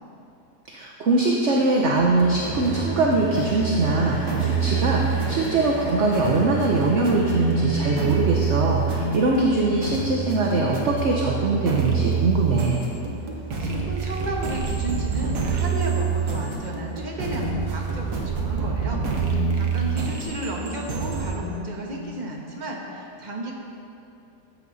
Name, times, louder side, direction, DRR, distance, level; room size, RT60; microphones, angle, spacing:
voice 1, 0.7-12.8, right 2 dB, 50° right, -1 dB, 1.0 m, -22 dB
sound 1, 1.9-21.3, right 6 dB, 65° right, 1.8 m, -27 dB
sound 2, 2.5-12.7 13.6-13.7, left 1 dB, 55° left, 3.0 m, -39 dB
sound 3, 4.6-4.7 5.3-5.8 7.4-7.9 8.9-10.1 10.5-10.8 11.4-11.9 12.2-12.5 13.5-14.0 15.2-15.7 16.1-16.3 17.1-19.7 20.6-20.8 21.3-22.3, left 2 dB, 35° left, 0.6 m, -34 dB
voice 2, 13.3-23.5, right 1 dB, 30° right, -1 dB, 1.4 m, -33 dB
14.0 x 8.2 x 4.1 m, 2.7 s
omnidirectional pair, 1.9 m